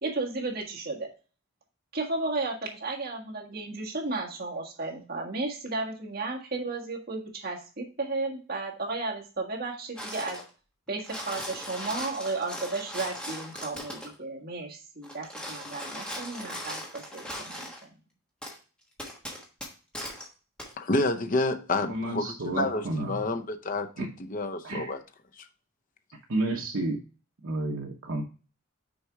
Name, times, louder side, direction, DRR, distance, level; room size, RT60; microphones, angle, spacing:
voice 1, 0.0-1.1 1.9-10.4 10.9-17.9, right 3 dB, 45° right, 1.7 m, -34 dB
sound 1, 10.0-10.5 10.9-14.1 15.0-17.8 18.4-18.6 19.0-20.3 20.6-20.7, equal, 5° left, 1.2 m, -39 dB
voice 2, 20.8-25.0 25.4-25.5, left 2 dB, 40° left, 0.6 m, -29 dB
voice 3, 21.8-23.2 24.0-24.1 24.6-25.0 26.3-27.0 27.4-28.2, right 2 dB, 70° right, 0.9 m, -31 dB
6.3 x 4.4 x 4.6 m
head